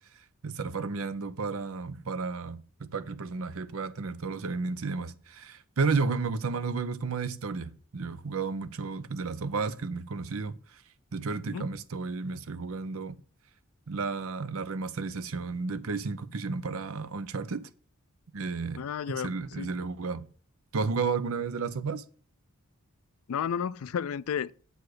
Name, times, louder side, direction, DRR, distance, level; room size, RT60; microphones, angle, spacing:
voice 1, 0.4-10.8 11.1-13.2 13.9-17.7 18.3-18.8 19.2-20.2 20.7-22.0, right 4 dB, 70° right, 0.6 m, -32 dB
voice 2, 18.7-19.7 23.3-24.5, left 7 dB, 70° left, 0.4 m, -32 dB
8.0 x 4.8 x 6.2 m
head